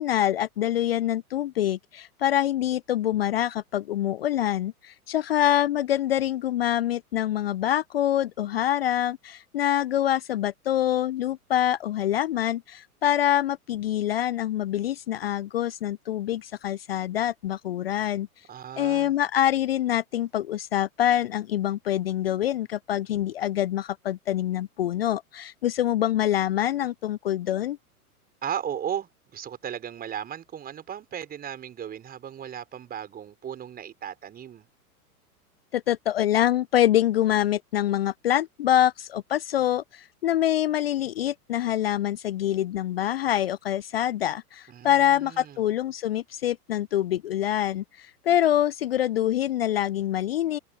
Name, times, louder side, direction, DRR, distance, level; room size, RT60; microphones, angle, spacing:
voice 1, 0.0-18.3 18.8-27.8 35.7-50.6, left 12 dB, 40° left, 0.5 m, -25 dB
voice 2, 18.5-19.1 28.4-34.7 44.7-45.6, right 9 dB, 20° right, 5.0 m, -36 dB
open air
figure-of-eight pair, 100°, 45 cm